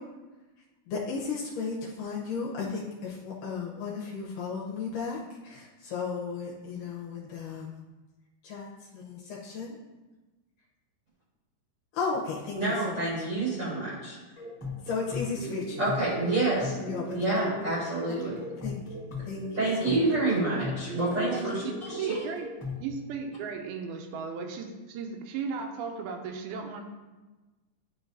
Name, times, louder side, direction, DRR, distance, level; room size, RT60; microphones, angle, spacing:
voice 1, 0.9-7.7 8.4-8.7 8.9-9.8 11.9-13.0 14.8-15.8 16.8-17.4 18.2-18.3 18.6-18.8 19.3-19.5 19.8-20.0, left 5 dB, 75° left, -4 dB, 2.1 m, -34 dB
voice 2, 12.5-14.2 15.8-16.8 17.1-18.4 19.5-22.2, right 2 dB, 50° right, -8 dB, 1.3 m, -28 dB
sound 1, 14.4-22.9, left 2 dB, 25° left, 1.9 m, -38 dB
voice 3, 22.0-22.5 22.8-26.8, right 5 dB, 85° right, 3 dB, 2.5 m, -36 dB
11.5 x 3.8 x 2.7 m, 1.2 s
omnidirectional pair, 4.4 m